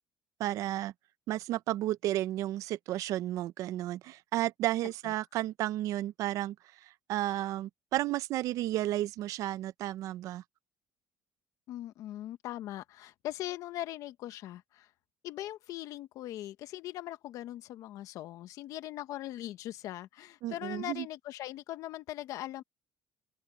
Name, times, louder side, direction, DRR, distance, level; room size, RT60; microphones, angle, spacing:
voice 1, 0.4-0.9 1.3-6.5 6.8-10.4 20.4-21.1, right 14 dB, 65° right, 0.6 m, -32 dB
voice 2, 4.8-5.2 11.7-14.9 15.2-22.6, left 14 dB, 65° left, 1.2 m, -40 dB
cardioid pair, 125°, 6 cm